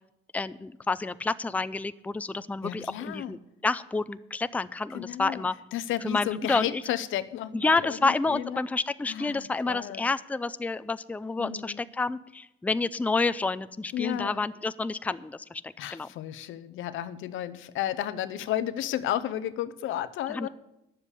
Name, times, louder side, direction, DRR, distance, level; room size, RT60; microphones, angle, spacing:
voice 1, 0.3-5.5 6.0-6.8 7.5-16.1 20.3-20.5, left 3 dB, 5° left, 14 dB, 0.4 m, -29 dB
voice 2, 2.6-3.4 4.9-5.4 5.7-8.6 9.1-10.1 11.4-11.9 13.9-14.5 15.8-20.5, left 11 dB, 85° left, 15 dB, 0.7 m, -33 dB
10.0 x 7.3 x 8.1 m, 0.89 s
cardioid pair, 90°, 20 cm